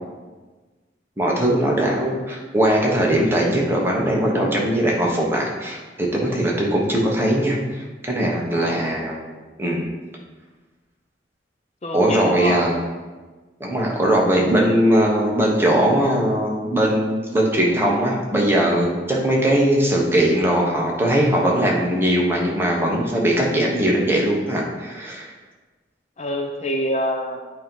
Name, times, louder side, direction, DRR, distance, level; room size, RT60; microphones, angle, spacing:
voice 1, 1.2-9.2 9.6-9.9 11.9-12.7 13.6-25.4, right 1 dB, 15° right, -2 dB, 1.0 m, -20 dB
voice 2, 8.5-8.9 11.8-12.6 26.2-27.4, equal, 40° left, 2 dB, 0.5 m, -26 dB
8.4 x 2.9 x 5.3 m, 1.3 s
head